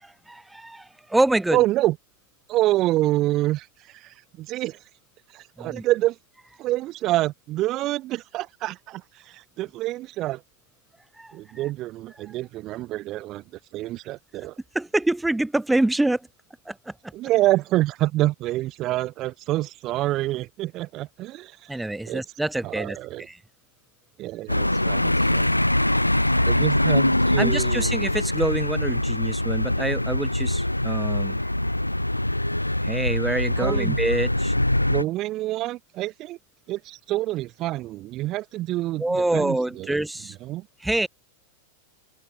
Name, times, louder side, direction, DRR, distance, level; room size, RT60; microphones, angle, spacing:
voice 1, 0.0-1.6 5.6-5.8 11.2-11.3 14.7-16.2 16.7-16.9 21.7-23.4 27.4-31.4 32.8-34.5 39.0-40.3 40.8-41.1, right 2 dB, 5° right, 5.6 m, -26 dB
voice 2, 1.5-1.9 2.5-4.8 5.3-6.2 6.6-10.4 11.3-13.4 13.7-14.5 17.1-22.2 22.6-23.3 24.2-25.5 26.4-27.9 33.6-34.0 34.9-36.4 36.7-40.0 40.4-40.7, right 16 dB, 35° right, 7.0 m, -27 dB
sound 1, 24.5-35.0, left 1 dB, 85° left, 0.6 m, -23 dB
open air
figure-of-eight pair, 90°, 0 cm